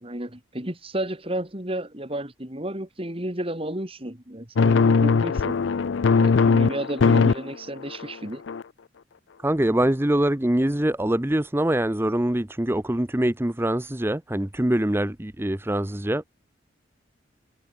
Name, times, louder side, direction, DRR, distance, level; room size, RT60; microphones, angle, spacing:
voice 1, 0.0-5.6 6.2-8.4, right 1 dB, 30° right, 3.2 m, -32 dB
sound 1, 4.6-7.4 7.8-8.1 8.5-8.6, left 5 dB, 70° left, 0.5 m, -20 dB
voice 2, 9.4-16.2, right 1 dB, 10° right, 0.7 m, -24 dB
head